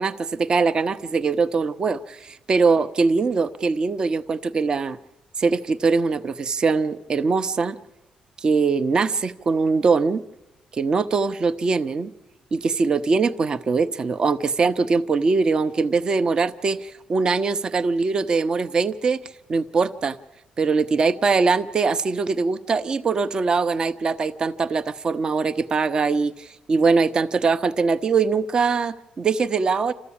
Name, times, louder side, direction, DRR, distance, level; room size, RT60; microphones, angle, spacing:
voice 1, 0.0-5.0 5.4-7.8 8.4-10.2 10.7-12.1 12.5-19.2 19.5-20.2 20.6-29.9, right 4 dB, 35° right, 11 dB, 0.7 m, -22 dB
27.5 x 13.5 x 8.6 m, 0.98 s
cardioid pair, 145°, 3 cm